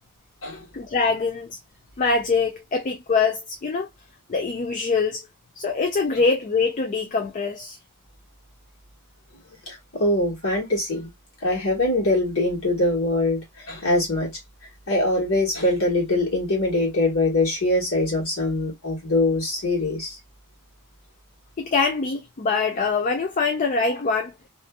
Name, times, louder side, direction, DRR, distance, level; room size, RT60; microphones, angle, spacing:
voice 1, 0.7-1.6 2.0-3.9 4.3-5.3 5.6-7.8 21.6-24.3, left 4 dB, 35° left, 0.4 m, -24 dB
voice 2, 9.7-11.1 11.4-14.4 14.9-20.2, left 1 dB, 65° left, 1.5 m, -23 dB
2.7 x 2.5 x 2.2 m
head